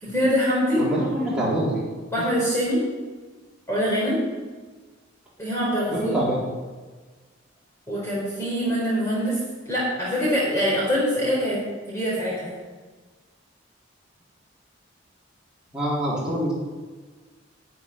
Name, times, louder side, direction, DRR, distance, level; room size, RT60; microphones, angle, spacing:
voice 1, 0.0-0.8 2.1-2.8 3.7-4.2 5.4-6.2 7.9-9.4 9.7-11.6 11.9-12.5, equal, 15° left, -7 dB, 4.1 m, -24 dB
voice 2, 0.8-1.8 5.9-6.4 15.7-16.5, right 1 dB, 5° right, -9 dB, 3.9 m, -25 dB
13.0 x 6.2 x 9.7 m, 1.4 s
head